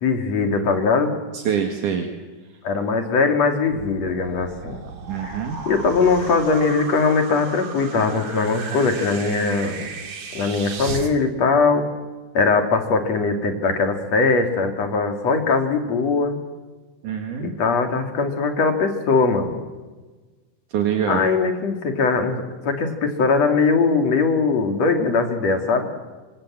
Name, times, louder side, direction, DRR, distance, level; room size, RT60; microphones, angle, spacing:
voice 1, 0.0-1.1 2.6-4.8 5.2-9.9 10.3-11.9 12.3-16.4 17.4-19.5 21.1-25.9, left 4 dB, 55° left, 5 dB, 3.7 m, -21 dB
voice 2, 1.3-2.1 5.0-5.6 17.0-17.5 20.7-21.3, right 8 dB, 70° right, 4 dB, 3.3 m, -24 dB
sound 1, 3.7-11.1, right 5 dB, 55° right, 3.6 m, -35 dB
28.0 x 25.0 x 7.6 m, 1.3 s
omnidirectional pair, 3.8 m